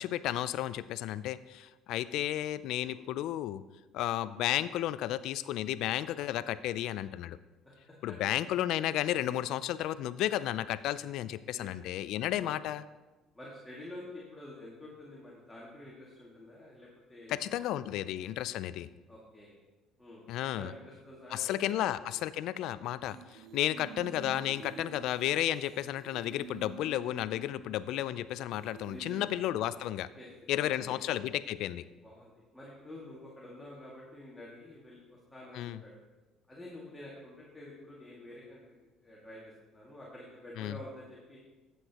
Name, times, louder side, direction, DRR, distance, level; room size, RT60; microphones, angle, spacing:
voice 1, 0.0-3.6 3.9-7.4 8.0-12.8 17.3-18.9 20.3-20.7 21.3-30.1 30.5-31.8 35.5-35.8 40.6-40.8, left 13 dB, 70° left, 16 dB, 0.4 m, -33 dB
voice 2, 13.3-18.1 19.1-19.6 20.0-21.8 22.1-22.2 28.8-29.4 30.1-30.3 30.6-31.0 32.0-36.0 36.5-38.8 39.0-41.4, left 1 dB, 10° left, -5 dB, 2.1 m, -49 dB
sound 1, 23.1-28.2 28.6-29.3, right 7 dB, 65° right, 0.7 m, -49 dB
12.5 x 8.1 x 2.9 m, 1.2 s
supercardioid pair, 95°, 0 cm